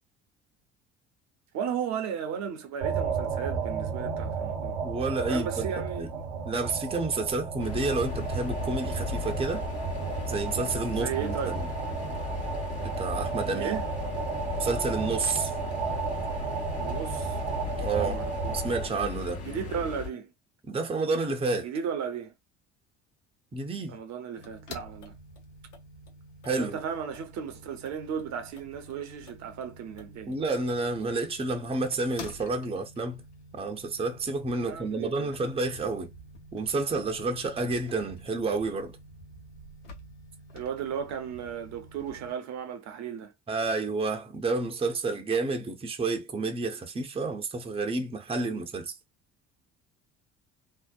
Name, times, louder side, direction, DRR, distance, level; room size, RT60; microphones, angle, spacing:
voice 1, 1.5-4.8 5.3-6.2 10.9-11.6 13.5-13.9 16.8-18.6 19.4-20.3 21.6-22.3 23.9-25.1 26.6-30.4 34.6-35.3 40.5-43.3, right 7 dB, 50° right, 0.7 m, -35 dB
sound 1, 2.8-18.9, right 5 dB, 80° right, 0.9 m, -33 dB
voice 2, 4.8-5.7 6.0-6.1 6.5-9.7 10.3-11.7 13.0-13.8 14.6-15.5 17.8-18.2 18.5-19.5 20.7-21.7 23.5-24.0 26.4-26.8 30.3-33.2 33.5-36.1 36.5-39.0 43.5-49.0, right 3 dB, 15° right, 0.7 m, -30 dB
sound 2, 7.6-20.1, left 7 dB, 45° left, 1.2 m, -37 dB
sound 3, 24.4-42.3, left 1 dB, 85° left, 0.7 m, -49 dB
2.7 x 2.0 x 2.2 m
hypercardioid pair, 60°, 35 cm